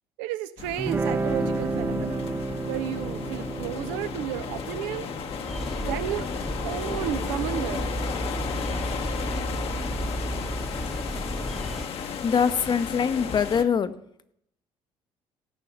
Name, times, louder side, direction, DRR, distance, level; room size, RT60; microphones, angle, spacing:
voice 1, 0.2-2.3 2.7-5.1 5.8-6.3 6.6-7.9, right 12 dB, 85° right, 12 dB, 0.7 m, -32 dB
sound 1, 0.6-13.6, left 7 dB, 60° left, 1.2 m, -34 dB
Guitar, 0.8-7.9, right 3 dB, 20° right, 0.6 m, -32 dB
sound 2, 5.5-11.9, right 1 dB, ahead, 1.0 m, -32 dB
voice 2, 12.2-13.9, left 7 dB, 40° left, 12 dB, 0.8 m, -23 dB
15.0 x 5.5 x 7.9 m, 0.75 s
supercardioid pair, 70°, 11 cm